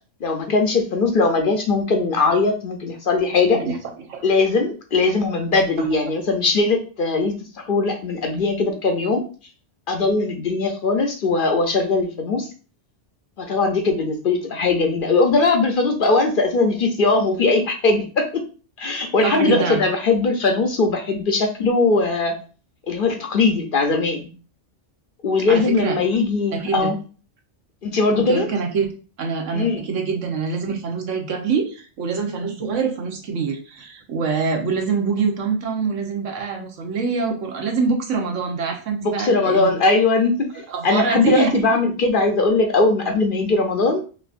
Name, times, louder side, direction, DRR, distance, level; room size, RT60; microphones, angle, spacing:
voice 1, 0.2-3.6 4.2-9.2 9.9-12.5 13.4-18.4 18.8-22.3 22.9-24.3 25.2-27.0 27.8-28.5 29.5-29.8 39.0-40.5 40.8-44.0, left 3 dB, 55° left, 4 dB, 0.7 m, -20 dB
voice 2, 19.2-19.8 25.5-26.0 26.5-26.9 28.1-28.9 29.2-39.7 40.7-41.7, right 5 dB, 85° right, 3 dB, 1.2 m, -24 dB
5.5 x 2.5 x 2.5 m, 0.37 s
omnidirectional pair, 1.2 m